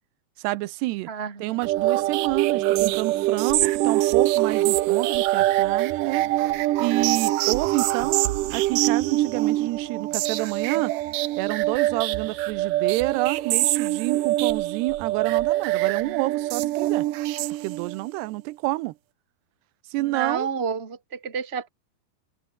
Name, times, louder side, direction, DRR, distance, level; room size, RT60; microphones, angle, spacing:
voice 1, 0.4-1.1 1.4-6.3 6.8-8.2 8.5-10.9 11.4-17.1 17.6-19.0 19.9-20.5, right 20 dB, 90° right, 2.8 m, -28 dB
voice 2, 1.1-1.6 16.0-16.3 20.0-21.7, right 6 dB, 55° right, 0.7 m, -31 dB
sound 1, 1.6-18.1, right 16 dB, 70° right, 2.1 m, -24 dB
open air
omnidirectional pair, 4.6 m